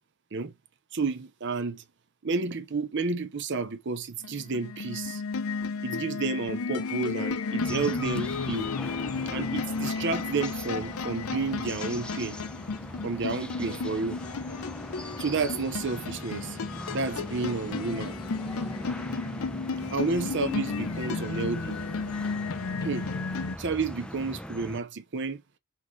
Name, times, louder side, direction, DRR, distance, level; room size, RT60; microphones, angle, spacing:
voice 1, 0.9-1.8 2.2-5.2 5.8-8.8 9.3-12.4 13.0-14.2 15.2-16.6 16.9-18.2 19.9-21.8 22.8-23.1 23.6-25.4, right 4 dB, 55° right, 0.7 m, -31 dB
sound 1, 4.2-23.6, left 4 dB, 80° left, 0.7 m, -33 dB
sound 2, 7.6-24.8, equal, 5° left, 0.6 m, -41 dB
6.1 x 3.7 x 4.5 m
head